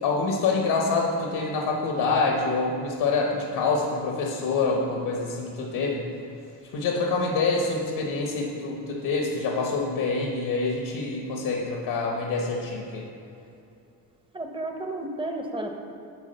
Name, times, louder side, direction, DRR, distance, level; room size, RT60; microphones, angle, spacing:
voice 1, 0.0-6.0 6.7-13.0, left 3 dB, 85° left, 0 dB, 1.2 m, -26 dB
voice 2, 14.3-15.8, right 1 dB, 15° right, 3 dB, 0.8 m, -32 dB
9.7 x 3.7 x 6.6 m, 2.7 s
cardioid pair, 130°, 37 cm